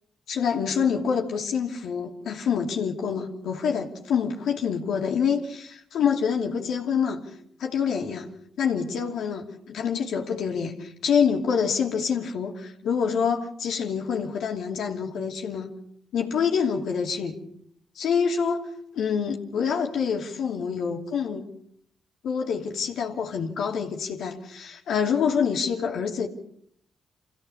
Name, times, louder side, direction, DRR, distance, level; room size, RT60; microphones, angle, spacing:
voice 1, 0.3-7.2 7.6-8.3 8.6-15.7 16.1-17.4 17.9-18.7 18.9-21.5 22.2-26.3, left 6 dB, 70° left, 2.9 m, -26 dB
26.5 x 16.0 x 7.2 m
hypercardioid pair, 45°, 0 cm